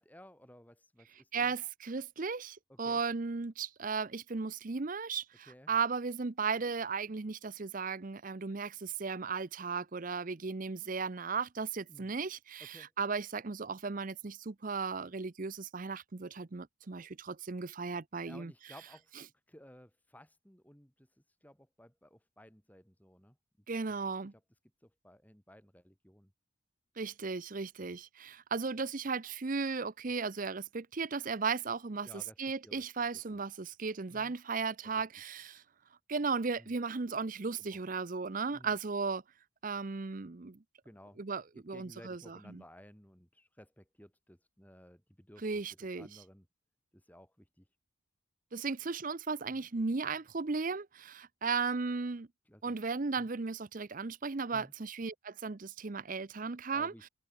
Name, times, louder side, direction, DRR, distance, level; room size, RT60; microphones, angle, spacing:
voice 1, 0.0-1.5 2.7-3.0 5.5-5.7 11.9-12.1 12.7-12.9 18.2-19.1 19.5-21.1 21.4-23.4 24.8-26.3 27.8-28.0 32.0-32.4 32.6-32.8 33.3-33.4 34.1-34.3 34.8-35.0 36.6-36.7 37.6-37.8 38.5-38.7 40.8-41.2 41.7-45.6 46.0-46.5 46.9-47.6 49.5-49.7 52.5-52.6 53.2-53.3 54.5-54.7 56.7-57.0, equal, 10° left, 3.2 m, -56 dB
voice 2, 1.3-18.5 23.7-24.3 27.0-35.6 36.1-39.2 39.6-40.6 41.2-42.6 45.4-46.2 48.5-52.3 52.6-57.1, right 4 dB, 40° right, 0.6 m, -36 dB
open air
head